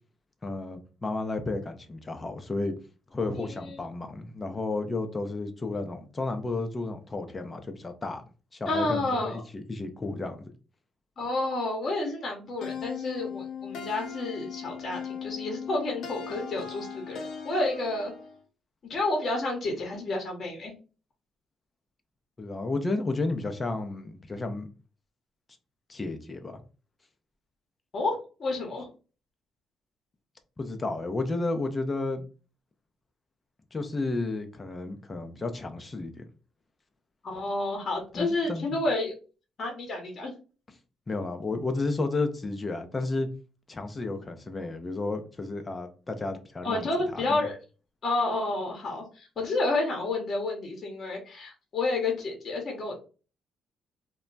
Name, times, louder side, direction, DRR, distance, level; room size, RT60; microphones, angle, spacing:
voice 1, 0.4-2.7 3.1-8.2 8.5-10.5 22.4-24.7 25.9-26.6 30.6-32.3 33.7-36.2 38.2-38.8 41.1-43.3 43.7-47.5, left 3 dB, 25° left, 0.6 m, -32 dB
voice 2, 3.3-3.8 8.7-9.4 11.2-18.1 18.8-20.7 27.9-28.9 37.2-39.1 39.6-40.3 46.6-47.6 48.0-52.9, left 2 dB, 50° left, 0.9 m, -30 dB
sound 1, 12.6-18.4, left 7 dB, 75° left, 0.5 m, -38 dB
2.2 x 2.1 x 3.8 m
cardioid pair, 80°, 0 cm